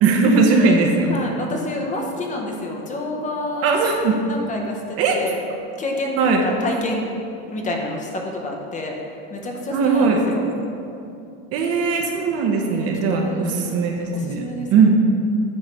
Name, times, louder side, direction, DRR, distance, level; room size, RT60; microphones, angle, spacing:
voice 1, 0.0-1.1 3.6-4.1 5.0-5.2 6.2-6.4 9.7-10.2 11.5-14.4 14.7-14.9, right 4 dB, 50° right, 2 dB, 0.9 m, -18 dB
voice 2, 0.6-3.8 4.3-5.4 5.8-7.1 7.4-9.0 9.3-10.5 12.6-13.7 14.1-14.7, left 1 dB, 25° left, 1 dB, 0.7 m, -29 dB
8.6 x 3.1 x 5.2 m, 2.6 s
supercardioid pair, 130°, 32 cm